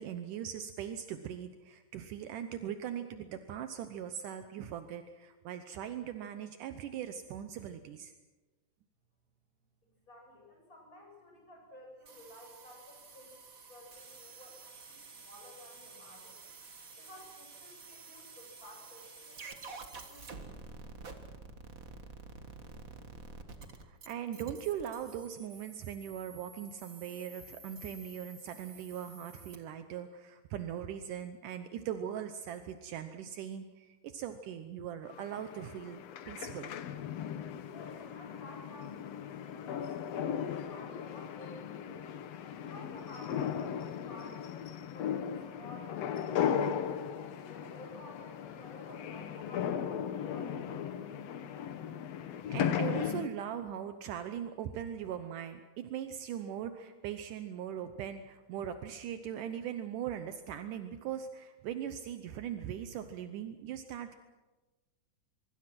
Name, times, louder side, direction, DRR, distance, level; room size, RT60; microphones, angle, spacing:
voice 1, 0.0-8.2 23.8-36.7 52.3-64.1, right 9 dB, 75° right, 8 dB, 2.4 m, -40 dB
voice 2, 10.1-13.4 13.7-16.4 17.0-20.5 37.2-42.3 42.6-46.9 47.3-51.1, left 1 dB, 25° left, 0 dB, 7.9 m, -53 dB
sound 1, 12.1-29.6, right 3 dB, 35° right, 1.5 m, -50 dB
sound 2, 35.1-53.3, left 8 dB, 60° left, 2.0 m, -37 dB
24.5 x 24.0 x 6.0 m, 1.2 s
omnidirectional pair, 3.7 m